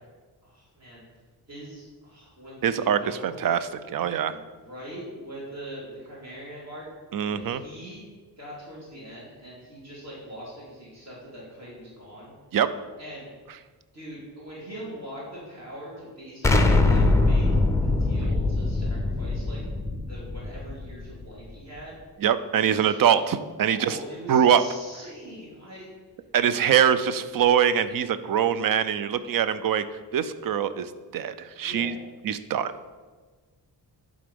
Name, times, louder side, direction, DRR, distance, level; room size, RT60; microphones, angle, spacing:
voice 1, 0.4-1.0 1.5-3.4 4.3-6.9 7.3-8.0 8.4-12.3 13.0-13.3 13.9-17.5 17.8-19.6 20.0-21.9 22.6-23.1 23.7-25.9 26.6-26.8 31.6-31.9, equal, 40° right, -7 dB, 2.3 m, -42 dB
voice 2, 2.6-4.4 7.1-7.6 12.5-12.7 22.2-24.0 24.3-24.6 26.3-29.9 30.1-31.9 32.2-32.7, right 8 dB, 60° right, 13 dB, 0.5 m, -23 dB
Explosion, 16.4-21.3, left 2 dB, 10° left, 0.5 m, -22 dB
11.0 x 3.9 x 5.2 m, 1.4 s
wide cardioid pair, 165°, 39 cm